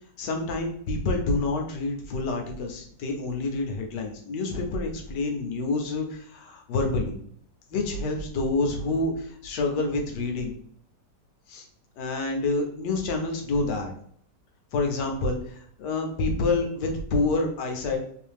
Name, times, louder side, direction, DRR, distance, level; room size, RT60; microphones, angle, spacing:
voice 1, 0.2-7.1 7.7-10.5 11.5-11.6 12.0-13.9 14.7-18.0, left 3 dB, 75° left, 3 dB, 1.3 m, -28 dB
3.2 x 2.7 x 3.4 m, 0.64 s
omnidirectional pair, 1.9 m